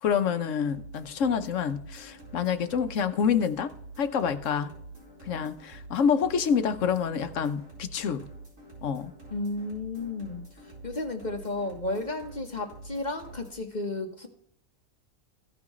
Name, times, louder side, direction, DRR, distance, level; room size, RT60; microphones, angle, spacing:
voice 1, 0.0-4.7 5.3-8.2 8.8-9.1, left 7 dB, 70° left, 1.1 m, -27 dB
sound 1, 0.7-13.6, right 2 dB, 75° right, 4.7 m, -47 dB
voice 2, 9.3-10.4 10.8-14.3, left 2 dB, 35° left, 1.3 m, -33 dB
16.0 x 6.0 x 3.1 m
omnidirectional pair, 1.4 m